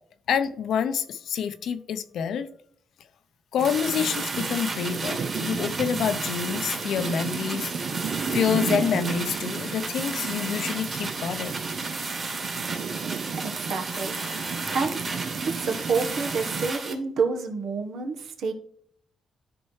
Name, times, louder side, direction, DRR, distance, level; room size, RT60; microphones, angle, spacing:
voice 1, 0.3-2.5 3.5-7.7 8.3-11.5, left 7 dB, 75° left, 0.6 m, -27 dB
sound 1, 3.6-16.9, right 3 dB, 35° right, 2.6 m, -34 dB
sound 2, 3.6-16.7, right 6 dB, 55° right, 0.5 m, -33 dB
voice 2, 13.4-14.1 14.7-15.0 15.4-18.5, right 4 dB, 75° right, 1.2 m, -28 dB
12.5 x 4.5 x 3.2 m
cardioid pair, 110°, 0 cm